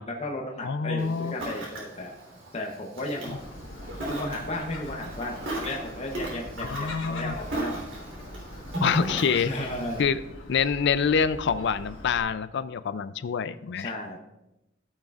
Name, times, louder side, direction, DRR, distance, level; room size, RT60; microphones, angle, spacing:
voice 1, 0.1-2.1 2.5-3.4 4.1-7.8 9.3-10.1 13.8-14.2, left 1 dB, 35° left, 0 dB, 0.9 m, -34 dB
voice 2, 0.6-1.3 3.3-3.4 6.7-7.4 8.8-9.7 10.0-10.2 10.5-13.9, left 6 dB, 60° left, 14 dB, 0.4 m, -26 dB
Ocean, 1.0-10.0, right 1 dB, 75° right, 3.4 m, -36 dB
Gull seagull, 3.3-12.2, left 1 dB, 75° left, 1.4 m, -43 dB
15.0 x 6.5 x 2.5 m, 0.95 s
head